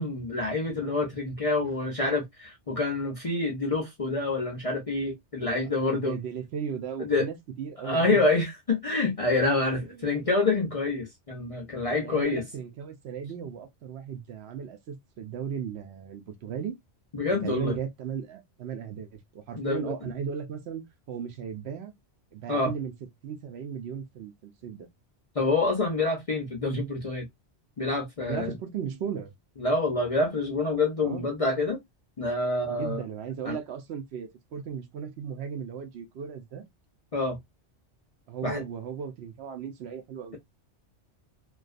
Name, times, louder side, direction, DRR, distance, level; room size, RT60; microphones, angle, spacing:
voice 1, 0.0-6.2 7.0-7.3 7.8-12.4 17.1-17.8 19.6-19.9 22.5-22.7 25.4-27.3 27.8-28.5 29.6-31.8 32.2-33.0 33.4-33.6 37.1-37.4 38.4-38.6, left 2 dB, 45° left, 0.5 m, -27 dB
voice 2, 5.7-8.2 9.9-10.1 12.0-16.7 17.4-21.9 22.3-22.9 23.2-24.9 28.2-29.3 31.0-31.2 32.7-36.7 38.3-40.4, right 7 dB, 70° right, 0.8 m, -36 dB
2.4 x 2.3 x 2.3 m
omnidirectional pair, 1.2 m